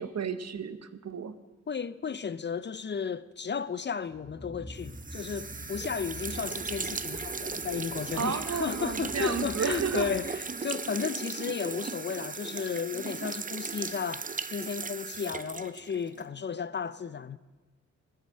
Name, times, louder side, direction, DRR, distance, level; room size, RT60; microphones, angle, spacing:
voice 1, 0.0-1.3 8.2-10.1, right 7 dB, 55° right, 0.9 m, -32 dB
voice 2, 1.7-17.4, left 6 dB, 35° left, 0.5 m, -34 dB
sound 1, 4.1-10.6, equal, ahead, 1.7 m, -46 dB
sound 2, 4.8-16.3, right 4 dB, 25° right, 0.6 m, -37 dB
16.0 x 10.5 x 6.4 m
cardioid pair, 85°, 30 cm